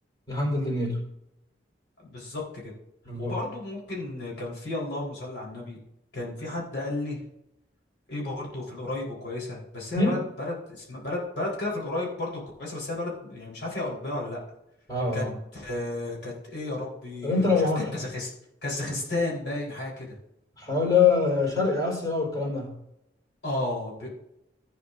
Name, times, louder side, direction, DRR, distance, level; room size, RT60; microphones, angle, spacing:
voice 1, 0.3-1.0 3.0-3.4 9.9-10.2 14.9-15.3 17.2-17.9 18.8-18.9 20.6-22.7, left 4 dB, 20° left, -3 dB, 4.2 m, -24 dB
voice 2, 2.0-2.7 3.2-5.8 6.1-7.2 8.1-14.4 15.1-15.2 15.5-17.5 17.8-18.3 18.6-20.1 23.4-24.1, left 2 dB, 70° left, -3 dB, 4.1 m, -33 dB
16.0 x 9.3 x 2.6 m, 0.84 s
head